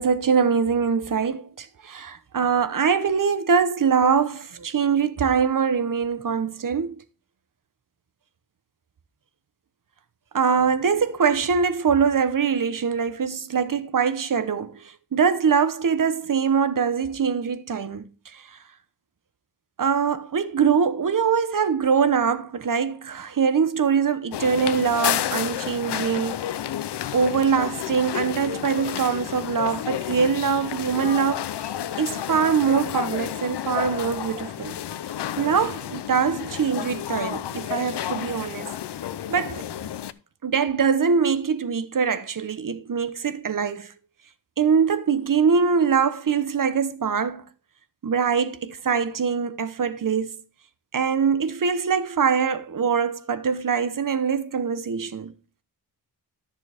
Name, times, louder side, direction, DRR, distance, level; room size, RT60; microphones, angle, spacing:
voice 1, 0.0-7.0 10.3-14.8 15.1-18.0 18.3-18.4 19.8-26.4 27.1-31.7 32.0-34.8 35.4-38.7 39.3-39.6 40.4-43.9 44.6-47.4 48.0-50.4 50.9-55.3, right 6 dB, 55° right, 1.0 m, -23 dB
sound 1, 24.3-40.1, left 10 dB, 90° left, 0.6 m, -31 dB
13.0 x 6.9 x 3.4 m
wide cardioid pair, 115°, 40 cm